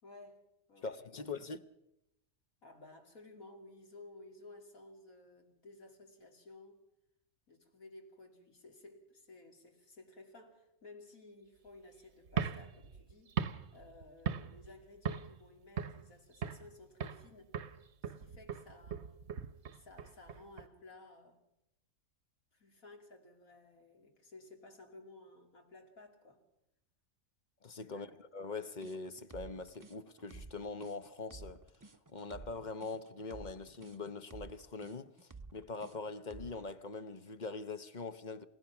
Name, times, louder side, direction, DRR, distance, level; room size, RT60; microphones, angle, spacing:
voice 1, 0.0-0.4 0.7-1.3 2.6-6.8 7.5-13.4 13.7-17.6 18.0-19.1 19.7-21.4 22.5-26.4 27.9-28.2, left 2 dB, 75° left, 3.2 m, -56 dB
voice 2, 0.8-1.6 27.6-31.6 32.1-38.5, left 4 dB, 40° left, 0.8 m, -43 dB
sound 1, 12.3-14.7 15.1-15.4 15.8-16.7 17.0-17.3 17.5-20.7, right 7 dB, 55° right, 1.1 m, -39 dB
sound 2, 28.8-36.7, right 3 dB, 20° right, 0.5 m, -52 dB
29.0 x 16.5 x 6.0 m
omnidirectional pair, 1.5 m